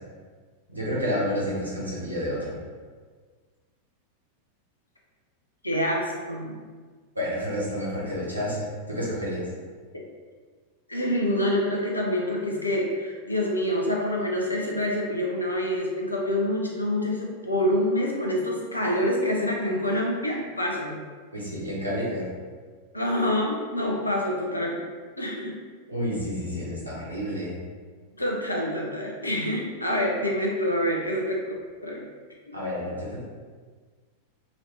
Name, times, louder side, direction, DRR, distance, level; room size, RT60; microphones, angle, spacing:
voice 1, 0.7-2.5 7.1-9.5 21.3-22.3 25.9-27.6 32.5-33.2, equal, 85° right, -6 dB, 0.9 m, -30 dB
voice 2, 5.6-6.6 10.9-21.0 22.9-24.8 25.2-25.5 28.2-31.4 31.8-32.0 32.5-32.6, left 1 dB, 85° left, -2 dB, 0.6 m, -26 dB
3.0 x 2.7 x 3.1 m, 1.5 s
figure-of-eight pair, 90°, 0 cm